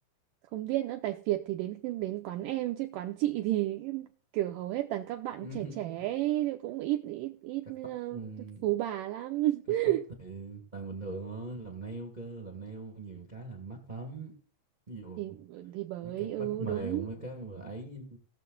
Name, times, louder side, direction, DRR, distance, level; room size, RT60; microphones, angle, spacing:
voice 1, 0.5-4.1 4.3-8.2 8.6-10.0 15.2-17.1, right 15 dB, 80° right, 1.9 m, -32 dB
voice 2, 5.3-6.0 8.1-8.6 10.2-14.3 14.9-15.4 16.0-18.2, right 3 dB, 55° right, 0.5 m, -41 dB
18.5 x 6.6 x 3.9 m
omnidirectional pair, 4.4 m